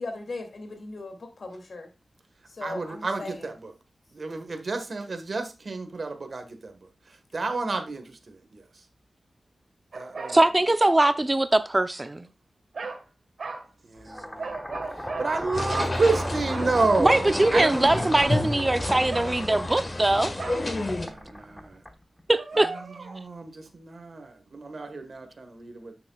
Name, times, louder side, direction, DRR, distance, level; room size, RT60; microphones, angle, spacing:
voice 1, 0.0-1.9 2.5-3.5 7.3-7.5, left 3 dB, 75° left, 2.5 m, -38 dB
voice 2, 2.6-3.5 4.1-6.7 7.3-8.6 9.9-10.4 13.8-14.5 15.0-17.2 17.5-18.1 21.0-21.8 23.1-25.9, right 3 dB, 65° right, 1.5 m, -30 dB
sound 1, 9.9-10.4 11.0-11.2 12.7-13.0 13.4-13.7 14.4-15.3 15.7-17.4 18.2-18.4 19.1-19.5 20.4-20.7 22.3-23.2, right 3 dB, 80° right, 1.5 m, -37 dB
voice 3, 10.3-12.3 17.0-20.3 22.3-22.7, right 2 dB, 30° right, 0.6 m, -22 dB
sound 2, 14.0-22.3, left 1 dB, 10° left, 1.3 m, -37 dB
sound 3, 15.5-21.1, left 1 dB, 45° left, 1.7 m, -30 dB
9.2 x 6.7 x 2.4 m
cardioid pair, 60°, 0 cm